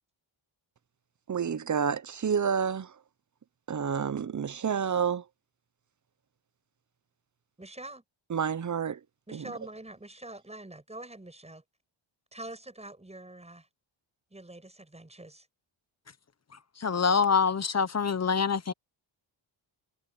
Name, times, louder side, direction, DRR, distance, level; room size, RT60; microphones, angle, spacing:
voice 1, 1.3-2.9 3.7-5.2 8.3-9.0 9.3-9.5, right 7 dB, 35° right, 0.9 m, -29 dB
voice 2, 7.6-8.0 9.3-11.6 12.3-13.7 14.3-15.5, right 2 dB, 15° right, 7.7 m, -45 dB
voice 3, 16.8-18.7, left 5 dB, 30° left, 1.0 m, -25 dB
cardioid pair, 105°, 49 cm